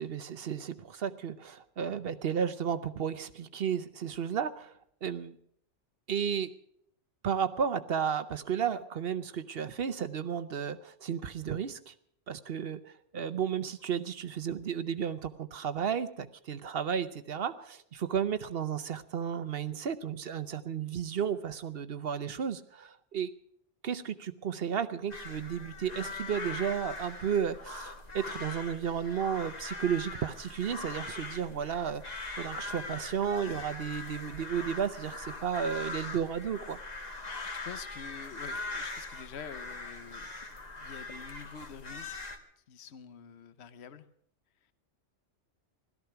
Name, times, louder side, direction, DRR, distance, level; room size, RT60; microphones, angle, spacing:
voice 1, 0.0-5.4 6.1-6.5 7.2-11.9 12.3-23.3 23.8-36.8, right 7 dB, 60° right, 12 dB, 0.9 m, -33 dB
sound 1, 25.1-42.4, left 3 dB, 35° left, 1.5 m, -41 dB
voice 2, 37.4-42.1 42.7-44.1, left 7 dB, 65° left, 12 dB, 1.1 m, -47 dB
17.0 x 13.5 x 5.8 m, 0.66 s
omnidirectional pair, 1.2 m